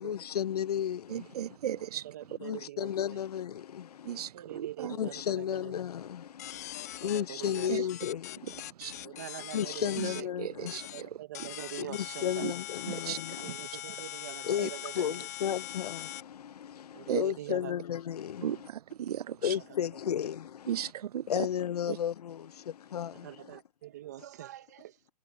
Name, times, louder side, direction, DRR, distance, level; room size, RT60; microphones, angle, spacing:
voice 1, 0.0-1.8 2.4-4.3 4.9-9.3 9.5-11.1 11.8-13.5 14.4-18.7 19.4-20.9 21.3-23.6, left 9 dB, 80° left, 0.6 m, -34 dB
voice 2, 1.1-2.1 4.0-5.0 7.7-7.8 8.8-9.0 10.0-10.1 10.4-11.1 11.4-11.5 12.4-12.5 12.9-13.2 17.1-17.2 18.4-19.5 20.7-21.3 21.9-22.0, right 10 dB, 80° right, 0.4 m, -35 dB
voice 3, 2.0-3.2 4.3-5.6 7.0-7.7 9.0-10.1 10.9-12.4 13.4-15.1 16.9-17.7 23.2-24.9, right 14 dB, 25° right, 1.0 m, -44 dB
sound 1, 6.4-10.2 10.7-11.0 11.3-16.2, left 13 dB, 25° left, 0.8 m, -42 dB
hypercardioid pair, 175°, 20 cm